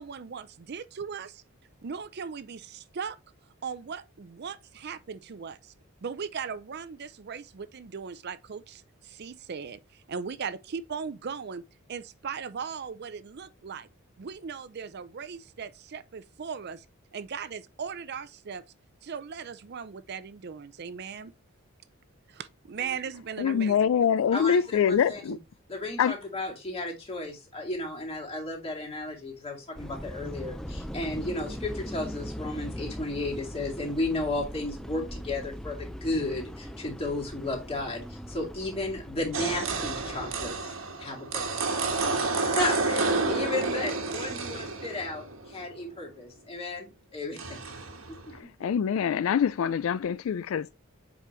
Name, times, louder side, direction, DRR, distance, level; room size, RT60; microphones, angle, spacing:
voice 1, 0.0-1.4 1.8-3.2 3.6-5.7 6.0-11.6 11.9-13.9 14.2-16.9 17.1-18.6 19.0-21.3 22.3-23.9, right 6 dB, 50° right, 0.5 m, -38 dB
voice 2, 23.4-25.4 26.0-26.1 48.3-50.8, left 7 dB, 70° left, 0.3 m, -25 dB
voice 3, 24.3-25.4 25.7-41.8 42.1-47.6, left 2 dB, 25° left, 2.2 m, -34 dB
sound 1, 29.7-40.6, equal, ahead, 0.5 m, -40 dB
sound 2, 39.3-45.7 47.4-48.4, right 3 dB, 70° right, 1.2 m, -30 dB
7.5 x 5.1 x 3.1 m
head